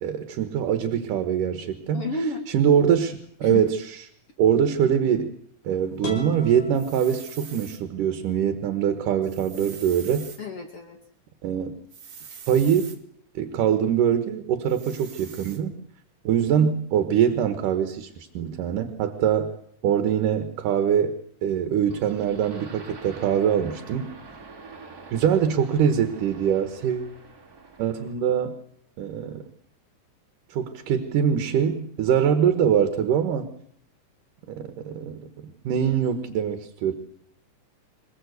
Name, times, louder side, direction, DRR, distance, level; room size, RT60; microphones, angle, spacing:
voice 1, 0.0-2.1 2.5-3.8 4.4-5.3 5.6-10.3 11.4-11.8 12.5-12.9 13.3-15.7 16.2-19.5 19.8-24.1 25.1-27.1 27.8-28.6 29.0-29.4 30.5-33.5 34.5-36.9, right 8 dB, 80° right, 8 dB, 2.8 m, -23 dB
voice 2, 1.9-2.4 3.4-3.6 10.4-11.0, left 2 dB, 50° left, 4 dB, 2.6 m, -30 dB
sound 1, 6.0-7.9, left 4 dB, 70° left, 6.9 m, -39 dB
sound 2, 6.7-7.8 9.2-10.4 11.9-13.0 14.6-15.6, right 7 dB, 45° right, 2.6 m, -44 dB
sound 3, 21.9-28.2, right 4 dB, 25° right, 4.4 m, -45 dB
26.5 x 17.0 x 8.1 m, 0.67 s
omnidirectional pair, 3.8 m